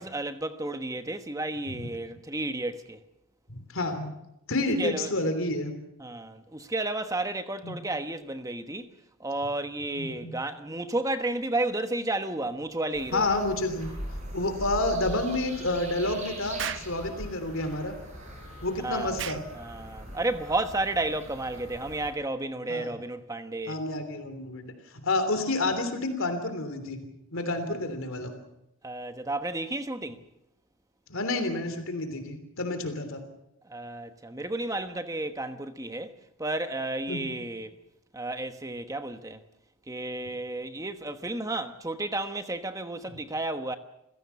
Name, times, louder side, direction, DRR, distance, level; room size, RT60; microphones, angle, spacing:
voice 1, 0.0-3.0 4.8-5.1 6.0-8.9 9.2-13.4 18.8-19.1 19.5-23.8 28.8-30.2 33.7-37.7 38.1-39.4 39.9-43.8, right 2 dB, 15° right, 1.1 m, -32 dB
voice 2, 3.7-4.1 4.5-5.7 7.6-7.7 10.0-10.3 13.1-13.9 14.3-18.0 18.6-19.4 22.7-22.9 23.7-24.7 25.0-27.0 27.3-28.4 31.1-33.2 37.1-37.3, left 2 dB, 70° left, 3.2 m, -29 dB
sound 1, 12.9-22.1, right 1 dB, 30° right, 7.2 m, -41 dB
Explosion, 16.6-16.9 19.2-19.5, right 8 dB, 55° right, 0.8 m, -34 dB
28.5 x 16.0 x 7.0 m
head